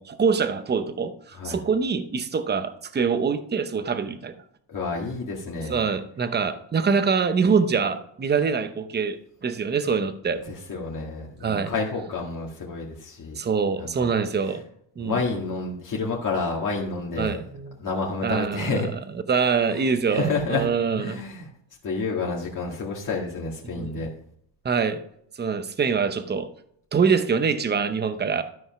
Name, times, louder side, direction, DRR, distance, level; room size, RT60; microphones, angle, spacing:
voice 1, 0.0-4.3 5.7-10.5 11.4-11.7 13.4-14.6 15.0-15.2 17.2-17.8 18.2-18.8 19.3-21.2 23.6-24.0 24.6-25.0 25.4-26.5 26.9-28.4, right 5 dB, 20° right, 10 dB, 0.8 m, -24 dB
voice 2, 4.7-5.8 10.5-13.4 13.8-13.9 14.5-14.6 15.0-17.4 17.8-18.9 19.7-20.7 21.0-21.5 21.8-24.1, left 3 dB, 45° left, -2 dB, 2.0 m, -29 dB
13.0 x 5.3 x 5.8 m, 0.70 s
cardioid pair, 140°, 45 cm